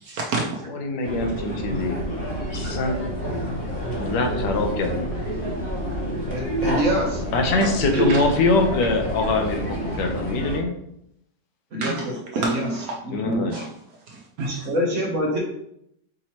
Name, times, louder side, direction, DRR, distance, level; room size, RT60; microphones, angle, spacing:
voice 1, 0.0-0.7 2.5-2.7 7.6-8.2 11.8-12.0 12.3-12.9 13.5-13.7 14.1-14.7, right 3 dB, 70° right, -1 dB, 0.9 m, -30 dB
voice 2, 0.7-2.0 2.4-3.0 4.0-5.2 7.3-10.7 13.1-13.5, left 2 dB, 80° left, 4 dB, 1.3 m, -23 dB
sound 1, 1.0-10.6, equal, 45° left, 0.8 m, -29 dB
voice 3, 6.3-7.2 7.9-8.1 11.7-12.8 13.0-13.5 14.6-15.4, equal, 55° right, -3 dB, 1.0 m, -25 dB
5.3 x 2.9 x 2.8 m, 0.77 s
omnidirectional pair, 1.9 m